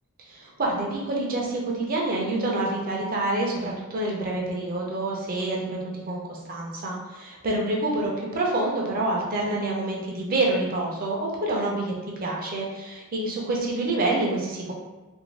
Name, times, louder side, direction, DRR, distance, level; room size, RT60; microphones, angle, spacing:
voice 1, 0.2-14.7, right 2 dB, 40° right, -2 dB, 0.6 m, -27 dB
2.6 x 2.6 x 3.2 m, 1.1 s
head